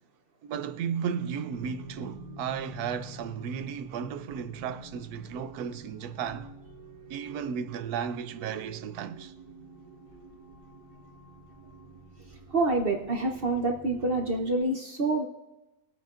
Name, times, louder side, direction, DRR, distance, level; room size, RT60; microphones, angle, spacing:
voice 1, 0.4-6.5 7.1-9.3, right 7 dB, 75° right, 1.1 m, -34 dB
sound 1, 1.5-14.6, right 2 dB, 55° left, 4.3 m, -48 dB
voice 2, 12.5-15.2, right 2 dB, 45° right, 0.9 m, -27 dB
22.0 x 8.4 x 2.5 m
omnidirectional pair, 1.7 m